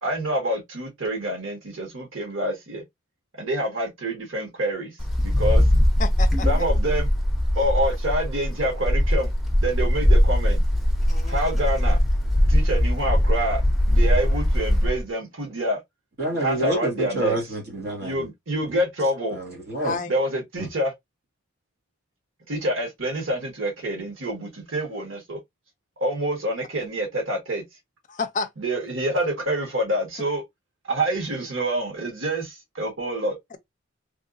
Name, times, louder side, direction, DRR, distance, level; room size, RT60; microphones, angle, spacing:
voice 1, 0.0-2.8 3.4-5.0 5.2-5.7 6.5-7.1 7.5-9.3 9.6-10.6 11.3-12.0 12.5-15.8 16.4-17.4 18.0-19.4 20.1-20.9 22.5-25.4 26.0-27.6 28.6-30.4 30.9-33.4, right 1 dB, 90° right, 1.6 m, -27 dB
Wind, 5.0-15.0, left 1 dB, ahead, 0.8 m, -21 dB
voice 2, 6.0-6.5 11.1-11.5 19.8-20.2 28.1-28.5 33.5-33.6, left 4 dB, 40° left, 0.5 m, -30 dB
voice 3, 16.2-18.3 19.3-20.0 20.6-20.7, right 2 dB, 55° right, 1.7 m, -28 dB
3.4 x 2.9 x 2.6 m
head